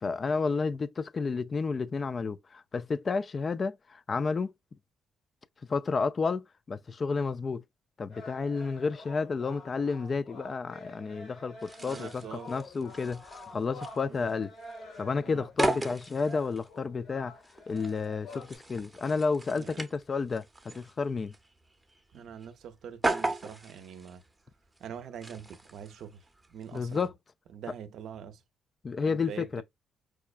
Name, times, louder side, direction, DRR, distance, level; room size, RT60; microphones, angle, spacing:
voice 1, 0.0-4.5 5.7-7.6 8.0-14.5 15.0-17.3 17.7-21.3 26.7-27.1 28.8-29.6, left 4 dB, 40° left, 0.3 m, -31 dB
sound 1, 8.1-18.6, left 2 dB, 80° left, 2.2 m, -48 dB
sound 2, 11.6-27.1, right 2 dB, 10° right, 0.7 m, -38 dB
voice 2, 11.8-12.5 14.1-14.2 19.5-19.8 22.1-24.2 24.8-26.1 26.5-27.1 27.5-28.4 29.0-29.6, right 8 dB, 75° right, 0.6 m, -44 dB
4.7 x 2.2 x 2.4 m
cardioid pair, 90°, 0 cm